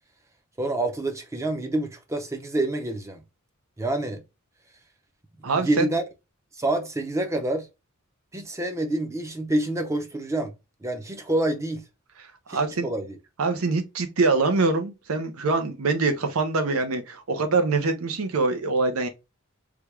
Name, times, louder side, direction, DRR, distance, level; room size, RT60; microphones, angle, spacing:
voice 1, 0.6-3.2 3.8-4.2 5.4-6.0 6.6-7.7 8.3-10.5 10.8-11.8 12.5-13.2, right 1 dB, 15° right, 0.6 m, -27 dB
voice 2, 5.4-5.9 12.5-12.9 13.4-19.1, right 3 dB, 85° right, 0.6 m, -24 dB
3.4 x 2.3 x 3.0 m
head